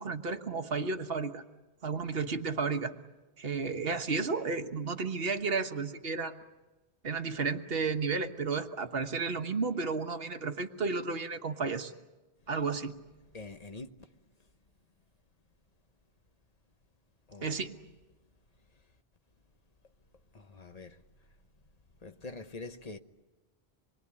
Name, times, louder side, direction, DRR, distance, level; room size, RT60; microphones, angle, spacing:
voice 1, 0.0-1.4 1.8-2.9 3.4-6.4 7.0-11.9 12.5-12.9 17.4-17.7, right 4 dB, 65° right, 1.5 m, -32 dB
voice 2, 13.3-13.9 17.3-17.6 20.3-21.0 22.0-23.0, left 3 dB, 40° left, 1.2 m, -44 dB
26.5 x 21.5 x 8.5 m
omnidirectional pair, 1.1 m